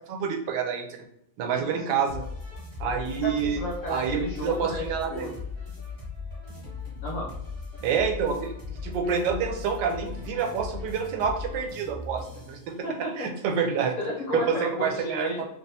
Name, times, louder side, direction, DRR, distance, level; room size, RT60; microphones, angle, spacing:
voice 1, 0.1-0.9 1.4-2.2 2.8-3.6 3.9-5.3 7.8-8.5 8.8-12.7 13.2-13.9 14.3-15.5, right 6 dB, 85° right, 4 dB, 1.2 m, -28 dB
voice 2, 1.5-2.0 3.2-5.3 7.0-7.3 12.8-13.3 14.0-15.4, left 1 dB, 60° left, -3 dB, 0.8 m, -33 dB
sound 1, 2.1-12.6, left 4 dB, 15° right, 1.4 m, -38 dB
3.4 x 2.7 x 2.7 m, 0.73 s
omnidirectional pair, 1.9 m